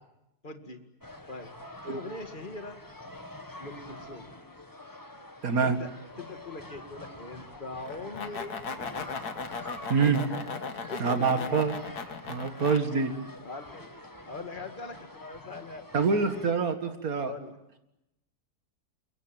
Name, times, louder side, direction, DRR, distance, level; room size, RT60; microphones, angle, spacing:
voice 1, 0.4-0.8 1.3-1.5 1.8-2.8 3.6-4.3 5.6-5.9 6.2-8.8 10.9-11.6 13.4-14.0 14.2-15.9 17.2-17.6, left 3 dB, 30° left, 6 dB, 2.3 m, -41 dB
sound 1, 1.0-16.5, left 1 dB, 15° left, 1.8 m, -46 dB
voice 2, 5.4-5.8 9.9-10.3 11.0-11.8 12.3-13.1 15.9-17.3, right 5 dB, 65° right, 8 dB, 2.4 m, -26 dB
sound 2, 7.9-12.8, left 5 dB, 75° left, 2.1 m, -37 dB
28.0 x 23.0 x 9.0 m, 0.88 s
omnidirectional pair, 1.7 m